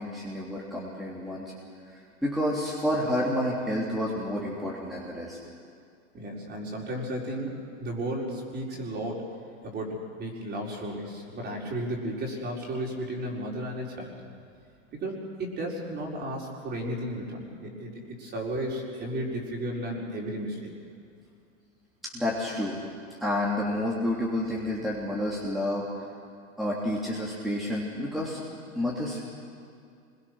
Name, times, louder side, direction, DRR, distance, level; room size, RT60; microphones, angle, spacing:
voice 1, 0.0-1.6 1.8-5.4 22.0-22.8 23.2-26.0 26.6-28.4 28.7-29.2, left 1 dB, ahead, -6 dB, 3.2 m, -30 dB
voice 2, 6.1-7.5 7.8-9.3 9.6-14.1 14.9-20.7, right 1 dB, 25° right, -1 dB, 5.0 m, -34 dB
25.5 x 22.5 x 6.3 m, 2.4 s
hypercardioid pair, 130°, 39 cm